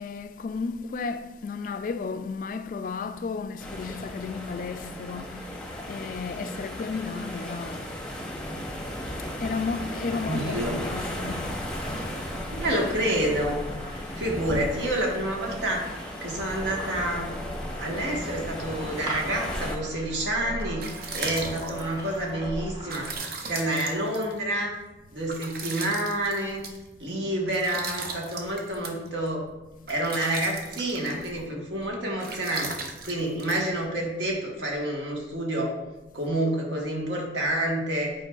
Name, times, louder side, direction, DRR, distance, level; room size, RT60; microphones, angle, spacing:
voice 1, 0.0-7.9 9.4-11.6, left 4 dB, 50° left, 0.3 m, -33 dB
sound 1, 3.6-19.8, left 1 dB, 5° left, 0.7 m, -36 dB
voice 2, 10.2-10.8 12.5-13.6 14.1-15.9 16.2-17.3 17.8-20.9 21.1-23.1 23.5-24.7 25.1-26.6 27.0-29.4 29.9-32.7 33.0-35.7 36.1-38.1, right 1 dB, 75° right, 1.4 m, -28 dB
sound 2, 10.5-23.2, equal, 20° right, 1.0 m, -38 dB
sound 3, 20.4-34.3, right 4 dB, 55° right, 0.7 m, -39 dB
9.0 x 4.6 x 2.4 m
head